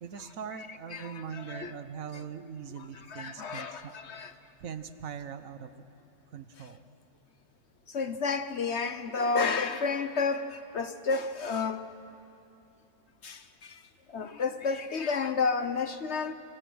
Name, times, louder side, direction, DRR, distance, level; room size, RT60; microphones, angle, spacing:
voice 1, 0.0-3.9 4.6-5.8 6.3-6.8, right 7 dB, 65° right, 1.3 m, -41 dB
voice 2, 0.9-1.7 2.8-4.3 7.9-11.8 13.2-13.7 14.1-16.3, left 4 dB, 55° left, 1.1 m, -31 dB
28.5 x 25.0 x 6.3 m
omnidirectional pair, 1.5 m